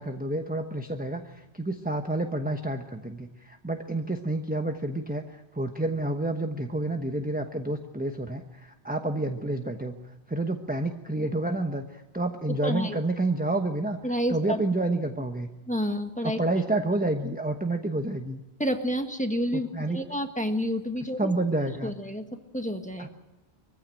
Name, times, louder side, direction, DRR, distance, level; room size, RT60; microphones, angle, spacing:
voice 1, 0.0-10.0 10.3-14.0 14.3-15.5 16.2-18.4 19.5-20.0 21.2-21.9 23.0-23.1, right 2 dB, 10° right, 5 dB, 1.0 m, -29 dB
voice 2, 12.5-13.0 14.0-14.6 15.7-16.4 18.6-19.7 19.9-21.3 21.8-23.1, equal, 5° left, 5 dB, 1.5 m, -29 dB
23.5 x 15.5 x 9.0 m, 1.1 s
omnidirectional pair, 1.1 m